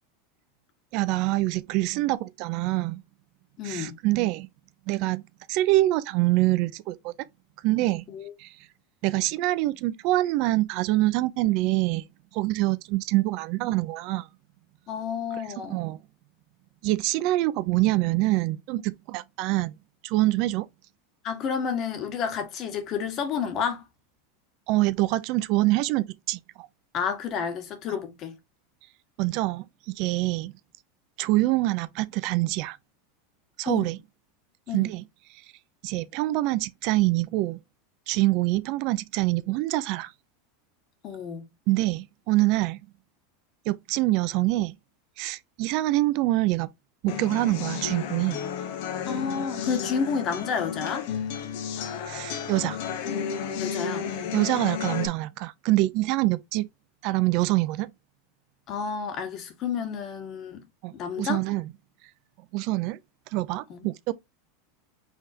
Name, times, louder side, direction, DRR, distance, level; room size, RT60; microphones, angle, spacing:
voice 1, 0.9-3.0 3.6-4.5 4.9-5.2 5.5-7.1 7.6-8.0 8.4-8.5 9.0-12.0 12.3-14.3 15.7-16.0 16.8-19.7 20.0-20.7 24.7-26.7 29.2-29.7 30.0-30.5 31.2-32.8 33.6-34.0 34.7-35.0 35.8-37.6 38.1-40.1 41.7-42.8 43.7-44.8 45.2-46.7 47.0-48.4 52.1-52.8 54.3-56.7 57.0-57.9 60.8-61.6 62.5-63.0 63.3-64.1, right 18 dB, 55° right, 0.5 m, -25 dB
voice 2, 3.6-3.9 8.1-8.3 14.9-15.8 21.2-23.8 26.9-28.4 33.6-33.9 34.7-35.0 41.0-41.5 49.1-51.1 53.6-54.4 58.7-60.6 60.9-61.4 63.7-63.9, left 6 dB, 45° left, 1.7 m, -30 dB
sound 1, 47.1-55.1, left 7 dB, 65° left, 1.0 m, -32 dB
5.4 x 3.5 x 2.8 m
hypercardioid pair, 110°, 0 cm